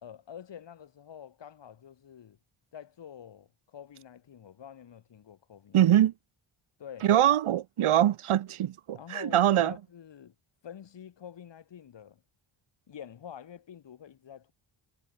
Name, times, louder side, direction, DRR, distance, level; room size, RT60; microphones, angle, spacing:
voice 1, 0.0-2.4 2.7-5.9 6.8-7.1 8.9-10.3 10.6-12.2 12.9-14.5, left 9 dB, 60° left, 2.4 m, -47 dB
voice 2, 5.7-6.1 7.0-9.7, right 12 dB, 90° right, 1.2 m, -23 dB
wide cardioid pair, 175°, 48 cm